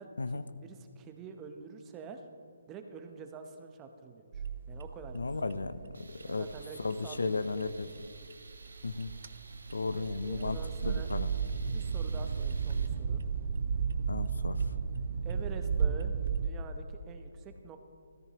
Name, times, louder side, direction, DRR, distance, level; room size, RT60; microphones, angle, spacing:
voice 1, 0.0-2.2 2.7-5.7 6.2-7.9 10.0-11.1 11.7-13.2 15.2-17.8, right 5 dB, 20° right, 6 dB, 0.8 m, -47 dB
sound 1, 4.3-16.5, right 6 dB, 55° right, 0.5 m, -34 dB
voice 2, 5.1-6.5 6.8-7.9 8.8-9.1 9.7-11.3 14.1-14.6, left 3 dB, 85° left, 14 dB, 0.5 m, -34 dB
Tools, 5.9-12.9, right 3 dB, 90° right, 1.2 m, -55 dB
13.5 x 13.5 x 2.9 m, 2.4 s
hypercardioid pair, 155°, 0 cm